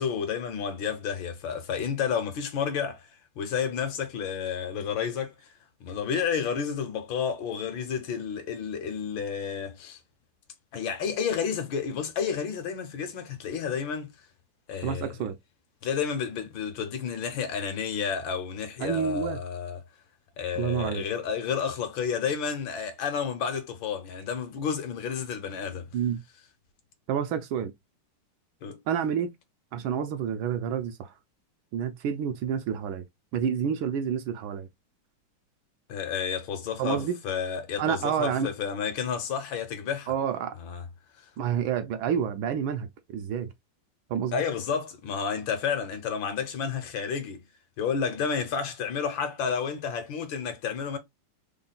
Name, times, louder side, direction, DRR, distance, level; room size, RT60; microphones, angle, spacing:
voice 1, 0.0-3.1 3.4-5.5 5.8-10.0 10.7-14.1 14.7-15.2 15.8-19.8 20.4-25.9 28.6-28.8 35.9-40.1 40.6-40.8 41.2-41.3 44.3-47.5 47.8-51.0, left 7 dB, 70° left, 1.4 m, -31 dB
voice 2, 14.8-15.4 18.8-19.4 20.6-21.0 25.9-26.2 27.1-27.7 28.9-29.3 29.7-31.1 31.7-33.0 33.3-34.7 36.8-37.2 37.8-38.5 40.1-40.5 41.4-42.9 43.1-43.5 44.1-44.4, right 8 dB, 75° right, 1.3 m, -28 dB
3.8 x 2.2 x 3.9 m
omnidirectional pair, 2.4 m